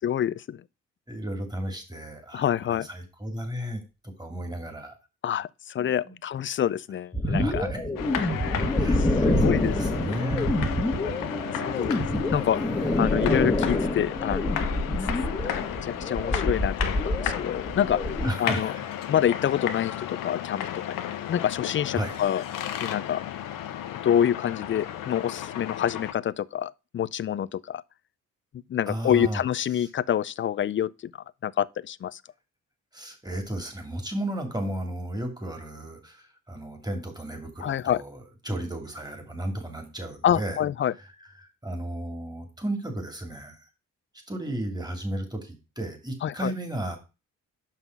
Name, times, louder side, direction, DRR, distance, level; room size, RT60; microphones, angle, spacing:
voice 1, 0.0-0.6 2.3-2.9 5.2-7.6 8.2-8.3 9.4-9.7 11.7-12.0 12.3-12.6 13.0-14.8 15.6-18.0 18.4-18.7 19.1-20.6 20.9-21.0 21.3-22.4 22.8-23.2 24.0-27.8 28.7-30.9 31.4-32.2 37.6-38.0 40.2-40.9 46.2-46.5, left 10 dB, 40° left, 0.4 m, -26 dB
voice 2, 1.1-5.0 5.8-6.2 7.2-7.8 8.8-10.5 12.4-12.8 18.2-18.9 21.9-22.2 28.9-29.4 29.7-29.9 32.9-40.6 40.9-43.7 44.3-47.0, right 1 dB, 10° right, 3.0 m, -34 dB
sound 1, 7.1-18.3, left 1 dB, 10° left, 1.7 m, -27 dB
sound 2, 8.0-26.1, left 10 dB, 85° left, 1.0 m, -34 dB
5.8 x 5.7 x 6.0 m
cardioid pair, 65°, 32 cm